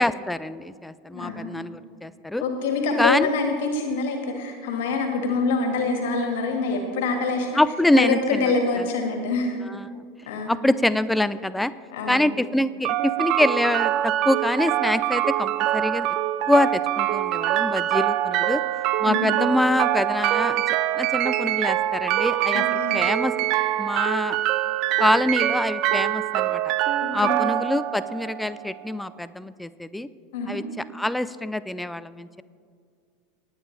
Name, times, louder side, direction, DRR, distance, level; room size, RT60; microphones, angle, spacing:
voice 1, 0.0-2.4 3.0-3.3 7.5-8.4 8.8-8.9 9.7-10.0 10.5-11.7 12.1-16.1 16.5-18.6 19.0-20.6 21.0-23.3 23.8-24.4 25.0-26.7 27.1-30.1 30.5-30.6 30.9-32.4, left 1 dB, 5° left, 15 dB, 0.5 m, -25 dB
voice 2, 1.1-1.5 2.4-7.6 8.0-9.6 10.3-10.5 11.9-12.3 19.1-19.3 22.5-23.0 27.0-27.4 30.3-30.6, left 4 dB, 65° left, 3 dB, 1.9 m, -25 dB
sound 1, 12.8-28.9, right 13 dB, 50° right, 0.5 m, -24 dB
19.5 x 8.9 x 3.3 m, 2.1 s
figure-of-eight pair, 80°, 0 cm